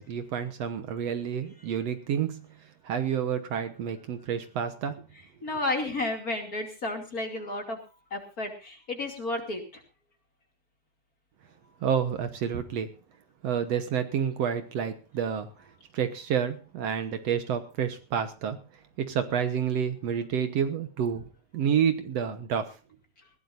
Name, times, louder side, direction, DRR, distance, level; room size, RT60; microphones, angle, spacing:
voice 1, 0.0-2.5 2.8-5.0 11.8-12.9 13.4-15.5 15.9-18.6 19.0-22.8, right 8 dB, 65° right, 9 dB, 2.2 m, -29 dB
voice 2, 5.4-7.8 8.1-9.8, left 2 dB, 30° left, 4 dB, 2.9 m, -32 dB
20.5 x 16.0 x 2.6 m, 0.31 s
omnidirectional pair, 3.3 m